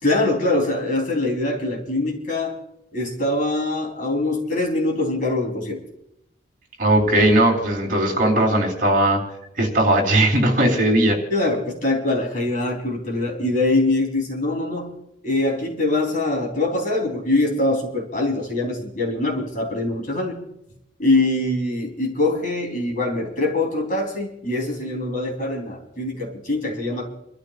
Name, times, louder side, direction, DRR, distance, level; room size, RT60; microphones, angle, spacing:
voice 1, 0.0-2.6 2.9-5.8 11.3-14.9 15.2-20.4 21.0-27.1, left 2 dB, 45° left, 0 dB, 3.7 m, -23 dB
voice 2, 6.8-9.2 9.6-11.2, right 1 dB, 45° right, 1 dB, 3.7 m, -18 dB
29.5 x 13.5 x 2.5 m, 0.80 s
head